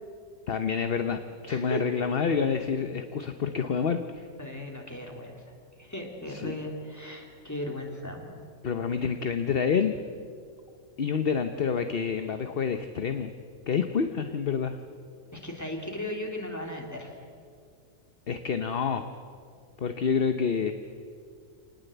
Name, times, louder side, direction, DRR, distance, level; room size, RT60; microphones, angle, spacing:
voice 1, 0.5-4.3 6.3-6.5 8.6-9.9 11.0-13.3 13.7-14.8 18.3-19.1 19.8-20.7, left 6 dB, 45° left, 8 dB, 1.0 m, -28 dB
voice 2, 1.5-1.8 4.4-5.4 5.8-8.4 15.3-17.1, left 1 dB, 10° left, 1 dB, 3.4 m, -36 dB
26.0 x 19.5 x 8.0 m, 2.2 s
omnidirectional pair, 1.5 m